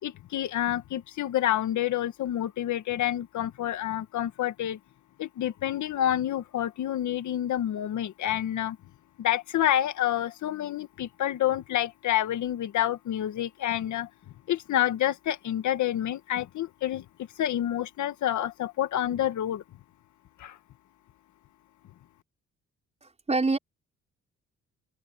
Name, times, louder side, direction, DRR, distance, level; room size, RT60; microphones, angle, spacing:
voice 1, 0.0-4.8 5.2-8.8 9.2-14.1 14.5-19.6 20.4-20.6, left 12 dB, 75° left, 1.7 m, -28 dB
voice 2, 23.0-23.6, right 3 dB, 20° right, 5.5 m, -26 dB
open air
cardioid pair, 90°, 30 cm